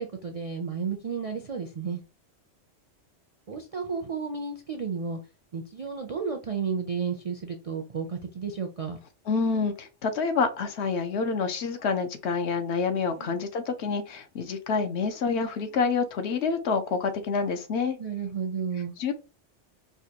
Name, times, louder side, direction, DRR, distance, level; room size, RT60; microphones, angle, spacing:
voice 1, 0.0-2.0 3.5-5.2 5.5-9.0 13.2-13.4 18.0-18.9, right 6 dB, 50° right, 0.4 m, -32 dB
voice 2, 9.3-18.0 19.0-19.1, left 5 dB, 70° left, 0.9 m, -27 dB
4.8 x 2.2 x 2.8 m
omnidirectional pair, 1.2 m